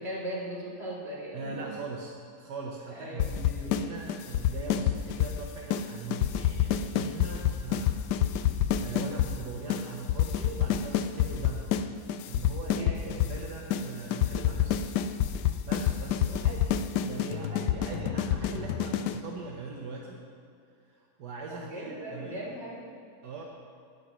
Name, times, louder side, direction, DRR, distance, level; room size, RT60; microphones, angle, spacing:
voice 1, 0.0-1.7 3.0-3.4 12.8-13.2 18.0-18.1 21.5-22.8, right 1 dB, 40° right, -7 dB, 3.3 m, -38 dB
voice 2, 1.3-8.1 8.5-11.7 12.3-14.8 15.3-16.8 17.0-20.2 20.9-22.5 23.2-23.4, right 4 dB, 75° right, -1 dB, 1.6 m, -41 dB
sound 1, 3.2-5.4 5.7-5.9 6.1-9.3 9.7-9.8 10.1-11.8 12.1-13.4 13.7-13.8 14.1-19.2, left 10 dB, 80° left, 1.2 m, -27 dB
10.0 x 10.0 x 6.0 m, 2.5 s
omnidirectional pair, 1.8 m